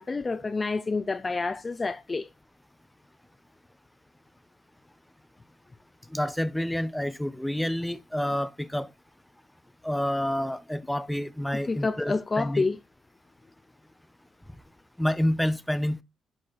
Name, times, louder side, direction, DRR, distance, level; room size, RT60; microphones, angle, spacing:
voice 1, 0.0-2.3 11.7-12.8, left 3 dB, 30° left, 0.6 m, -28 dB
voice 2, 6.1-8.9 9.8-12.7 15.0-16.0, left 1 dB, 5° left, 0.9 m, -28 dB
12.0 x 4.9 x 4.3 m
cardioid pair, 90°, 0 cm